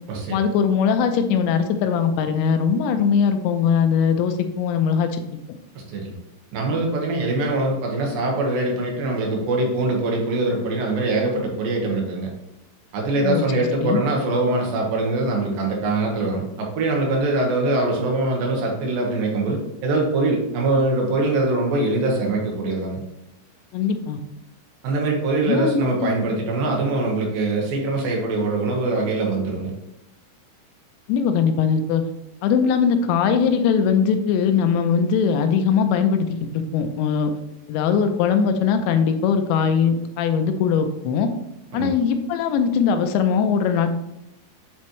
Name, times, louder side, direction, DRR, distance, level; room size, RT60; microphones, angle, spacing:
voice 1, 0.3-5.2 13.2-14.0 23.7-24.2 25.5-26.1 31.1-32.0 32.4-36.3 36.5-37.3 37.7-41.3 41.7-44.0, left 6 dB, 90° left, 7 dB, 2.9 m, -20 dB
voice 2, 5.7-6.2 6.5-12.3 12.9-23.0 24.8-29.7 41.7-41.9, right 2 dB, 65° right, 0 dB, 2.7 m, -23 dB
9.2 x 4.3 x 3.1 m, 0.86 s
omnidirectional pair, 5.0 m